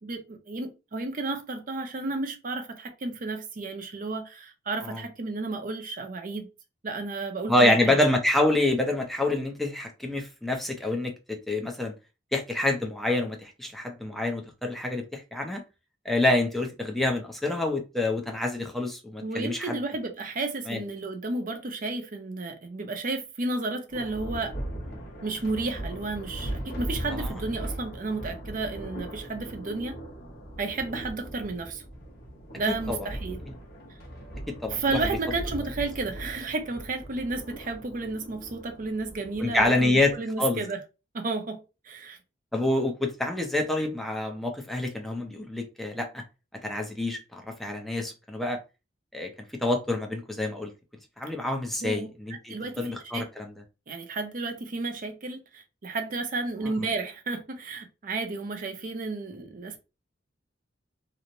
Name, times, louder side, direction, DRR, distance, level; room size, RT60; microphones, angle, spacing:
voice 1, 0.0-6.5 6.8-8.0 19.2-24.5 25.2-29.9 30.6-31.8 32.6-33.4 34.7-40.8 41.1-41.6 41.8-42.2 51.8-52.1 52.5-53.2 53.9-59.8, right 3 dB, 45° right, 0.6 m, -32 dB
voice 2, 7.5-11.9 12.3-15.6 16.0-19.8 20.7-20.8 27.1-27.3 32.7-33.1 34.6-35.0 39.4-40.1 40.4-40.6 42.5-46.2 46.6-48.6 49.1-49.3 49.6-50.7 51.2-53.5, left 2 dB, ahead, 0.5 m, -27 dB
Thunder, 23.9-40.1, right 1 dB, 55° left, 0.9 m, -39 dB
3.0 x 2.0 x 2.5 m
head